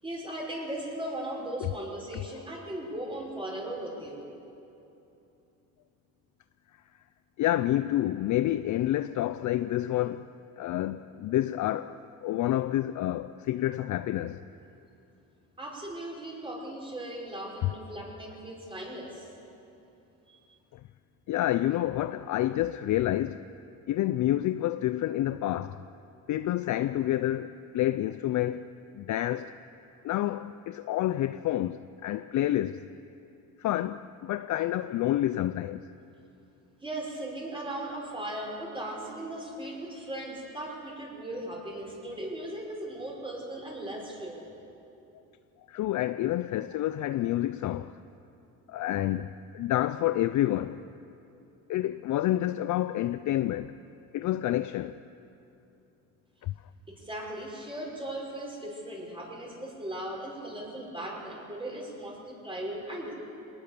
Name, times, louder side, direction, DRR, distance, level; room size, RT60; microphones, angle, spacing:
voice 1, 0.0-4.2 15.6-19.3 20.3-20.4 36.8-44.5 56.9-63.1, right 1 dB, 15° right, 6.0 m, -38 dB
voice 2, 7.4-10.3 10.6-14.4 17.6-17.7 20.7-20.8 21.3-23.4 23.9-25.8 26.3-28.7 28.9-29.5 30.0-32.9 33.6-35.9 45.7-47.9 48.7-50.8 51.7-53.7 54.1-55.0 56.4-56.5, left 13 dB, 60° left, 0.5 m, -28 dB
22.5 x 19.5 x 6.9 m
cardioid pair, 100°, 34 cm